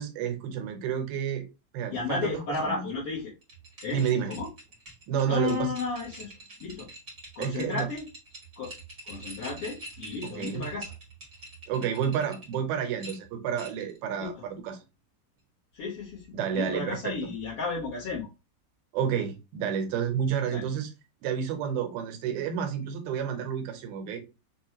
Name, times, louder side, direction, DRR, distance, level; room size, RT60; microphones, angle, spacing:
voice 1, 0.0-1.5 1.7-2.8 3.9-4.3 5.1-5.7 7.4-7.9 10.2-10.7 11.7-14.8 16.3-17.3 18.9-20.9 21.2-24.2, right 8 dB, 80° right, 2.6 m, -30 dB
voice 2, 1.9-3.3 3.8-4.0 4.3-4.5 5.2-6.3 6.6-6.9 7.3-8.1 8.6-8.7 9.0-10.9 14.2-14.4 15.7-18.3 20.5-20.6, left 4 dB, 75° left, 1.3 m, -33 dB
sound 1, 3.4-12.6 13.0-14.0, right 2 dB, 50° right, 0.7 m, -45 dB
6.0 x 2.3 x 2.8 m
omnidirectional pair, 4.3 m